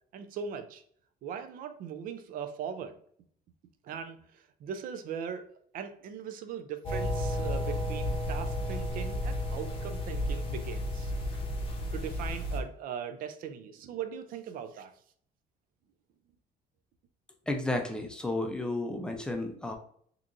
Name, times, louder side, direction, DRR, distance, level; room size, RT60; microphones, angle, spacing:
voice 1, 0.1-0.8 1.2-3.0 3.8-5.5 5.7-11.2 11.9-14.9, right 7 dB, 60° right, 9 dB, 0.5 m, -39 dB
sound 1, 6.8-12.6, left 1 dB, 35° left, 0.7 m, -32 dB
voice 2, 17.5-19.8, left 2 dB, 5° left, 4 dB, 0.4 m, -32 dB
3.7 x 2.9 x 2.5 m, 0.62 s
cardioid pair, 170°, 16 cm